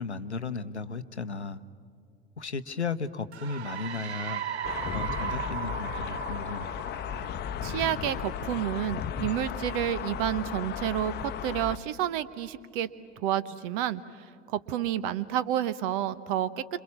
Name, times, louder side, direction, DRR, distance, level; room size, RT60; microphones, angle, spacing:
voice 1, 0.0-1.6 2.4-4.4 4.9-6.7, left 4 dB, 85° left, 13 dB, 0.8 m, -35 dB
sound 1, 3.3-7.9, right 9 dB, 80° right, 0.5 m, -37 dB
sound 2, 4.6-11.8, left 8 dB, 30° left, 0.9 m, -35 dB
voice 2, 7.6-12.9 13.2-16.5, right 11 dB, 50° right, 16 dB, 1.0 m, -30 dB
28.5 x 27.0 x 7.2 m, 2.4 s
figure-of-eight pair, 75°, 33 cm